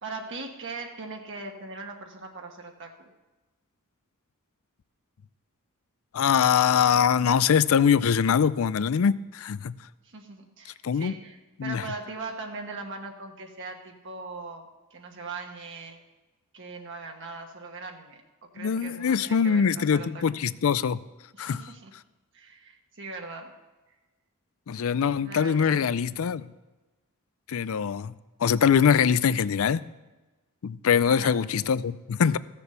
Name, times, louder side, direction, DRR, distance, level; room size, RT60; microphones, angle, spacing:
voice 1, 0.0-3.1 10.0-16.0 16.5-18.2 18.5-20.3 21.3-21.9 22.3-23.5 25.2-26.0 31.0-31.4, right 3 dB, 55° right, 2 dB, 1.3 m, -40 dB
voice 2, 6.1-9.7 10.8-11.1 11.6-11.8 18.6-21.0 21.4-21.6 24.7-26.5 27.5-28.1 28.4-29.8 30.6-32.4, left 7 dB, 65° left, 17 dB, 0.4 m, -23 dB
15.0 x 6.9 x 6.8 m, 1.2 s
head